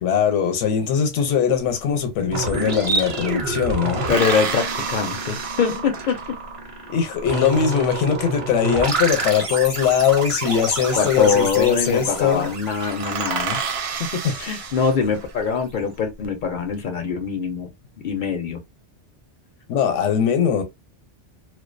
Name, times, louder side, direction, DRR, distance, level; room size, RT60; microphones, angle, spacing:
voice 1, 0.0-4.1 6.9-12.5 14.2-14.3 19.7-20.6, left 7 dB, 80° left, 0.9 m, -21 dB
sound 1, 1.8-1.9 2.1-3.2 3.9-6.5 9.1-10.1 11.3-11.7 12.0-12.1 12.4-12.5 12.8-15.3 15.9-16.6, right 6 dB, 70° right, 0.8 m, -30 dB
sound 2, 2.3-15.0, right 3 dB, 40° right, 0.5 m, -29 dB
voice 2, 4.1-6.2 11.0-13.6 14.0-17.7 18.0-18.6, left 6 dB, 55° left, 0.6 m, -23 dB
2.3 x 2.2 x 2.4 m
omnidirectional pair, 1.2 m